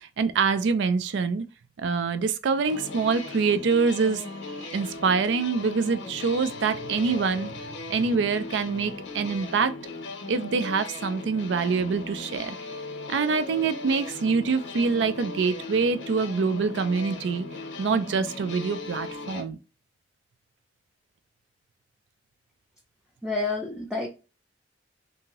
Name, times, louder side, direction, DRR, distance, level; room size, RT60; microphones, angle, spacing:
voice 1, 0.0-1.4 1.8-4.3 4.6-7.5 7.9-9.7 10.3-12.6 13.1-17.5 17.8-19.6, right 5 dB, 80° right, 0.4 m, -25 dB
sound 1, 2.6-19.4, left 3 dB, 90° left, 0.6 m, -38 dB
voice 2, 23.2-24.1, left 3 dB, 5° right, 0.4 m, -29 dB
2.8 x 2.6 x 2.9 m
head